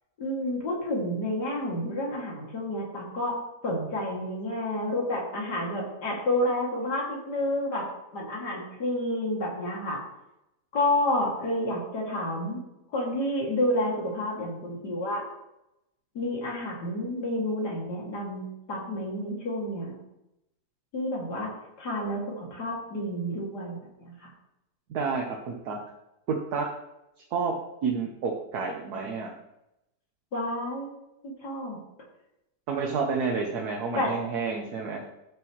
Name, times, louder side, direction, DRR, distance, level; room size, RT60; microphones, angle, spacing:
voice 1, 0.2-3.4 3.6-10.0 10.7-12.6 12.9-15.2 16.1-20.0 20.9-21.5 21.8-24.3 30.3-30.9 31.2-31.8 34.0-34.1, left 1 dB, 80° left, -3 dB, 3.0 m, -30 dB
voice 2, 24.9-25.8 26.3-26.7 27.3-27.5 27.8-29.3 32.7-35.0, right 5 dB, 70° right, 1 dB, 1.5 m, -29 dB
13.0 x 6.8 x 3.1 m, 0.88 s
omnidirectional pair, 1.7 m